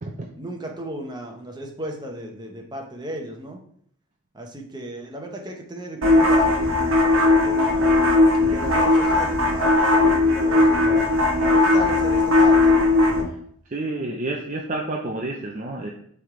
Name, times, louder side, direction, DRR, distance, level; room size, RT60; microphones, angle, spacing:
voice 1, 0.3-3.6 4.3-8.0 8.4-11.1 11.5-12.7, right 1 dB, 20° right, 1 dB, 0.9 m, -35 dB
sound 1, 6.0-13.2, left 2 dB, 65° right, 1.2 m, -18 dB
voice 2, 13.7-15.9, right 2 dB, 35° right, 0 dB, 0.6 m, -29 dB
7.5 x 3.6 x 3.7 m, 0.64 s
head